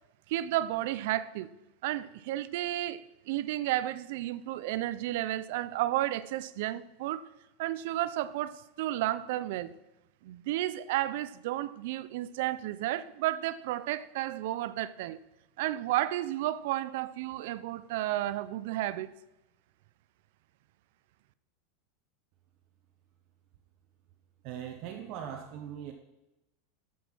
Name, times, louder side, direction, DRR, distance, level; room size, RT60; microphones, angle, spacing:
voice 1, 0.3-1.5 1.8-7.2 7.6-9.7 10.2-15.2 15.6-19.1, right 14 dB, 60° right, 0.5 m, -32 dB
voice 2, 24.4-25.9, right 9 dB, 45° right, 0.9 m, -40 dB
13.5 x 5.5 x 6.1 m
supercardioid pair, 165°, 0 cm